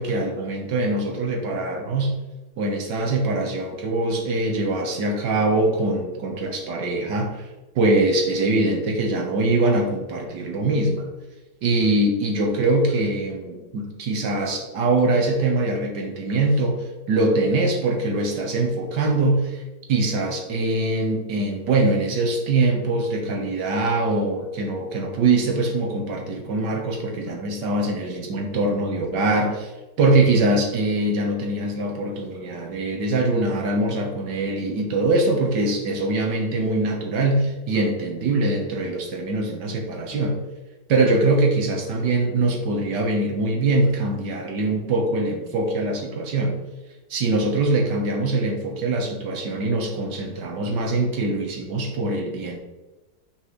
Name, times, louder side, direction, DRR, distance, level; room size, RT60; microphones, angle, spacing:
voice 1, 0.0-2.2 2.6-7.3 7.7-11.1 11.6-19.6 19.9-29.7 30.0-40.4 40.9-46.6 47.1-52.6, right 2 dB, 85° right, 2 dB, 1.8 m, -23 dB
7.2 x 5.8 x 3.2 m, 1.1 s
omnidirectional pair, 1.8 m